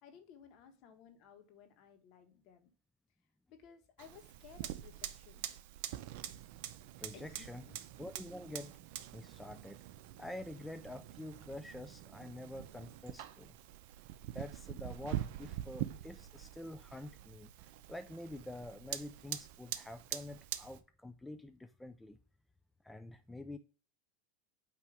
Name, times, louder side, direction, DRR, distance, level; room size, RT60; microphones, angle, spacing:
voice 1, 0.0-2.7 3.5-5.5 7.1-7.8, left 7 dB, 50° left, 1.5 m, -58 dB
Fire, 4.0-20.8, right 13 dB, 65° right, 0.6 m, -45 dB
voice 2, 7.0-7.7 8.0-8.7 9.1-9.8 10.2-13.6 14.3-17.5 17.9-22.2 22.8-23.6, left 1 dB, 5° left, 0.5 m, -47 dB
8.7 x 3.0 x 4.9 m
supercardioid pair, 120°, 0 cm